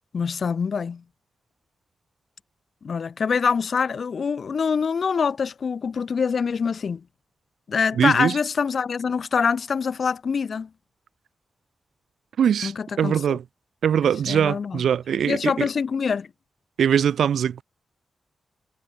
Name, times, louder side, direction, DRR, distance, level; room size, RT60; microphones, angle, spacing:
voice 1, 0.1-1.0 2.8-7.0 7.7-10.7 12.6-13.4 14.3-14.8 15.3-16.3, left 6 dB, 60° left, 0.8 m, -25 dB
voice 2, 8.0-8.4 12.4-13.4 13.8-15.7 16.8-17.6, right 8 dB, 90° right, 0.6 m, -22 dB
cardioid pair, 80°, 0 cm